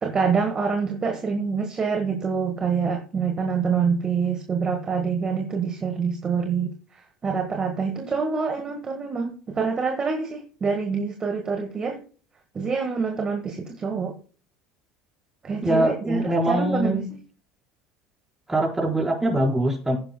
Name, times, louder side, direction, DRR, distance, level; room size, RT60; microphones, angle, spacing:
voice 1, 0.0-12.0 12.5-14.1 15.4-17.0, right 5 dB, 30° right, 4 dB, 1.6 m, -26 dB
voice 2, 15.6-17.1 18.5-20.0, right 1 dB, 15° right, -1 dB, 4.6 m, -23 dB
15.0 x 10.5 x 2.2 m, 0.41 s
supercardioid pair, 95°, 3 cm